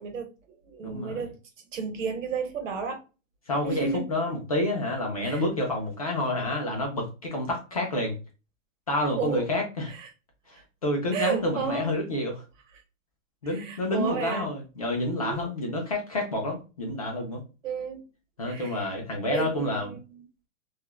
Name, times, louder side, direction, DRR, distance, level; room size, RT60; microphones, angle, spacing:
voice 1, 0.0-1.4 1.7-3.0 3.6-4.1 5.2-5.4 9.2-9.5 9.9-10.1 11.1-12.0 13.4-14.5 15.2-15.5 17.6-18.0 18.4-18.9 19.3-20.2, right 6 dB, 75° right, 0.9 m, -33 dB
voice 2, 0.8-1.2 3.5-8.2 8.9-9.9 10.5-12.4 13.4-17.4 18.4-19.9, left 1 dB, 30° left, 0.4 m, -29 dB
2.3 x 2.0 x 2.9 m
hypercardioid pair, 175°, 38 cm